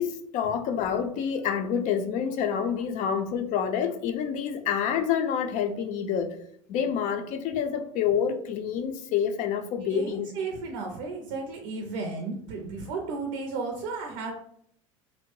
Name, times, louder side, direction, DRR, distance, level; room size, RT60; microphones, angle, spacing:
voice 1, 0.0-6.3 6.7-10.3, left 7 dB, 50° left, 6 dB, 0.5 m, -28 dB
voice 2, 9.8-14.3, right 4 dB, 70° right, 2 dB, 0.5 m, -34 dB
2.7 x 2.0 x 3.1 m, 0.66 s
hypercardioid pair, 80°, 16 cm